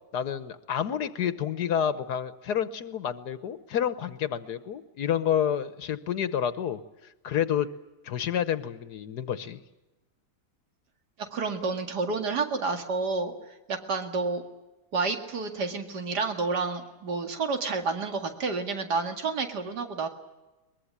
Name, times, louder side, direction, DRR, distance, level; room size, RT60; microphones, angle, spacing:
voice 1, 0.1-7.7 8.0-9.6, left 9 dB, 75° left, 13 dB, 1.5 m, -29 dB
voice 2, 11.2-13.3 13.7-14.4 14.9-20.1, right 4 dB, 80° right, 6 dB, 2.7 m, -29 dB
23.0 x 21.5 x 8.7 m, 1.0 s
omnidirectional pair, 1.7 m